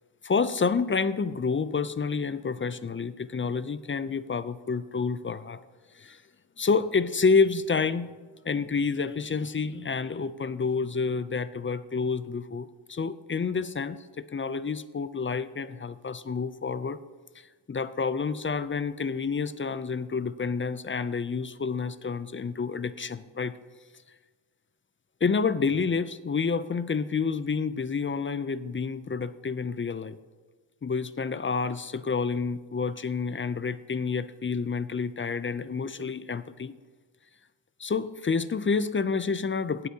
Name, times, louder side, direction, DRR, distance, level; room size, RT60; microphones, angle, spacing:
voice 1, 0.2-5.6 5.9-6.2 6.6-8.1 8.5-17.0 17.4-23.5 25.2-30.2 30.8-36.7 37.8-39.9, left 5 dB, 30° left, 14 dB, 0.4 m, -29 dB
17.5 x 8.1 x 2.8 m, 1.4 s
wide cardioid pair, 120°, 47 cm